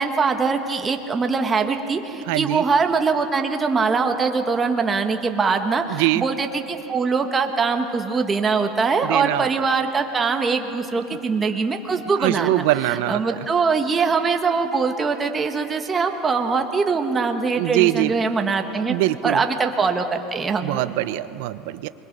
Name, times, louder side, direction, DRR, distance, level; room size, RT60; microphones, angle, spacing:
voice 1, 0.0-12.6 13.1-18.9 19.2-20.8, right 4 dB, 20° right, 5 dB, 1.4 m, -22 dB
voice 2, 2.3-2.6 5.9-6.2 9.0-9.5 10.9-11.0 12.2-13.5 17.5-18.2 18.8-19.4 20.6-21.9, right 17 dB, 75° right, 13 dB, 0.6 m, -23 dB
28.5 x 22.0 x 5.4 m, 2.8 s
supercardioid pair, 125°, 0 cm